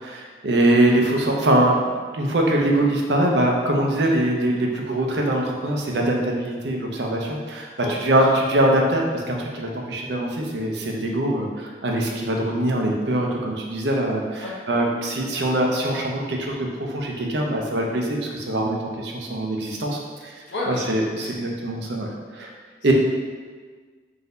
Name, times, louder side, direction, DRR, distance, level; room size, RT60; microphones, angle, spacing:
voice 1, 0.0-16.6 16.9-20.3 20.7-22.1 22.3-22.5 22.8-22.9, right 1 dB, 70° right, 0 dB, 0.6 m, -23 dB
voice 2, 7.8-8.3 14.4-14.6 20.5-20.9 21.2-21.3 22.8-22.9, left 2 dB, 85° left, -5 dB, 1.1 m, -31 dB
3.9 x 2.7 x 3.9 m, 1.5 s
head